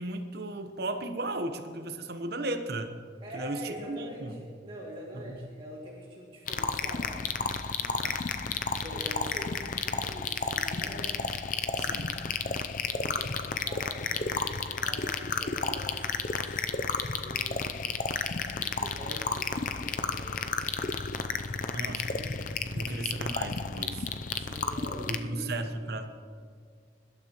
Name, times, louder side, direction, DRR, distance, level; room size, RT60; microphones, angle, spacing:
voice 1, 0.0-2.9 3.3-4.3 5.1-5.5 8.0-8.2 11.8-12.1 14.3-14.5 21.7-24.1 25.1-26.1, right 2 dB, 55° right, 6 dB, 1.0 m, -36 dB
voice 2, 3.2-8.0 8.6-11.2 12.8-14.5 14.8-18.0 18.5-21.0 24.3-25.5 25.8-25.9, equal, 30° right, -4 dB, 2.2 m, -45 dB
sound 1, 6.5-25.2, left 5 dB, 40° left, 0.5 m, -32 dB
24.0 x 12.0 x 3.0 m, 2.1 s
head